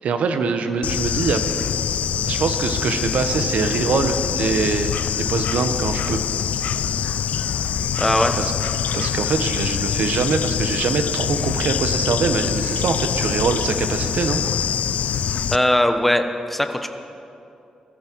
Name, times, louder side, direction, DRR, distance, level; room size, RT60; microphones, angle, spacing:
voice 1, 0.0-1.5 2.3-6.2 8.4-8.5 8.9-14.4, right 5 dB, 75° right, 8 dB, 1.1 m, -23 dB
Bird / Insect, 0.8-15.6, left 8 dB, 80° left, 0.5 m, -24 dB
voice 2, 8.0-8.4 15.5-16.2 16.5-16.9, left 1 dB, 5° left, 7 dB, 1.0 m, -19 dB
21.5 x 14.0 x 4.7 m, 2.7 s
cardioid pair, 110°, 2 cm